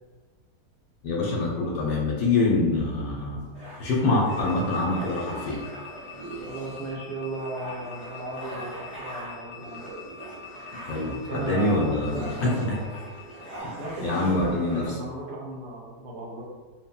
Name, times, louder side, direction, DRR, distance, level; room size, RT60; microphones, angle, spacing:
voice 1, 1.0-3.5 3.8-5.6 10.9-12.8 14.0-14.8, left 2 dB, 70° left, -3 dB, 1.0 m, -25 dB
sound 1, 3.5-14.9, right 1 dB, 40° right, 0.5 m, -42 dB
sound 2, 4.3-13.6, left 6 dB, 85° left, 1.2 m, -45 dB
voice 2, 6.4-9.8 11.1-12.9 13.8-16.4, right 2 dB, 75° right, -2 dB, 1.0 m, -35 dB
3.4 x 2.0 x 2.2 m, 1.4 s
omnidirectional pair, 1.8 m